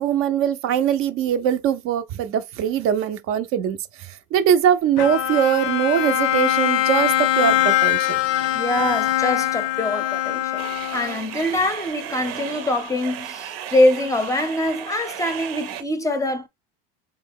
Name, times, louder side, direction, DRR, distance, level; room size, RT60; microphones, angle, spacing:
voice 1, 0.0-8.2, right 9 dB, 50° right, 0.4 m, -22 dB
Bowed string instrument, 5.0-11.4, left 13 dB, 80° left, 0.5 m, -22 dB
voice 2, 8.5-10.6 10.9-16.5, left 1 dB, 10° left, 0.5 m, -23 dB
sound 1, 10.6-15.8, right 10 dB, 90° right, 0.7 m, -35 dB
3.8 x 2.1 x 3.4 m
supercardioid pair, 115°, 30 cm